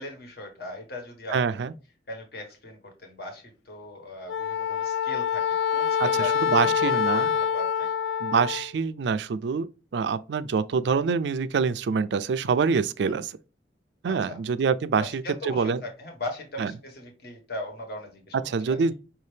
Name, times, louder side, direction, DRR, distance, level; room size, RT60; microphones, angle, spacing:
voice 1, 0.0-1.7 2.1-7.9 14.0-14.4 15.0-18.4 18.7-18.8, left 1 dB, 60° left, 1.4 m, -39 dB
voice 2, 1.3-1.7 6.0-7.3 8.2-9.7 9.9-13.3 14.0-15.8 16.6-16.7 18.5-18.9, right 5 dB, 70° right, 0.4 m, -25 dB
Wind instrument woodwind instrument, 4.3-8.7, left 7 dB, 80° left, 0.3 m, -25 dB
5.7 x 2.8 x 3.3 m
head